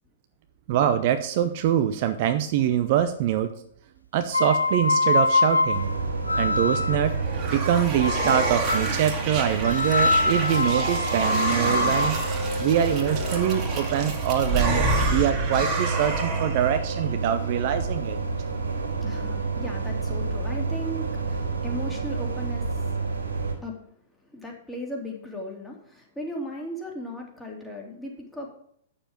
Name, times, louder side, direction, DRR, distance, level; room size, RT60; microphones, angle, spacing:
voice 1, 0.7-3.5 4.1-5.9 6.4-7.2 7.5-12.2 12.6-18.2, right 10 dB, 45° right, 8 dB, 0.7 m, -24 dB
sound 1, 4.3-7.1 8.0-9.0 9.6-13.6, left 3 dB, 85° left, 0.5 m, -25 dB
sound 2, 5.7-23.5, right 4 dB, 75° right, 2.8 m, -30 dB
sound 3, 6.8-16.8, right 3 dB, 30° right, 2.1 m, -29 dB
voice 2, 18.5-23.0 23.6-23.8 24.1-28.5, equal, 5° left, -1 dB, 2.8 m, -37 dB
8.9 x 7.0 x 5.1 m, 0.66 s
figure-of-eight pair, 105°, 0 cm